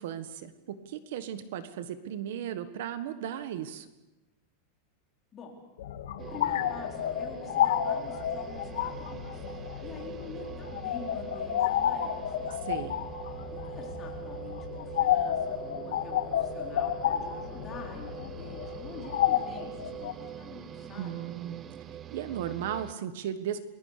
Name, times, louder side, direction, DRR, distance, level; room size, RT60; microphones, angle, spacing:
voice 1, 0.0-3.9 12.6-12.9 21.0-21.7 22.1-23.6, right 10 dB, 60° right, 11 dB, 1.5 m, -36 dB
sound 1, 5.8-20.1, left 10 dB, 75° left, 2.1 m, -31 dB
sound 2, 6.2-22.9, right 10 dB, 20° right, 0.8 m, -43 dB
voice 2, 6.3-9.4 9.8-12.5 13.5-21.3, left 5 dB, 15° left, -1 dB, 4.4 m, -47 dB
29.5 x 21.0 x 6.8 m, 1.0 s
supercardioid pair, 180°, 0 cm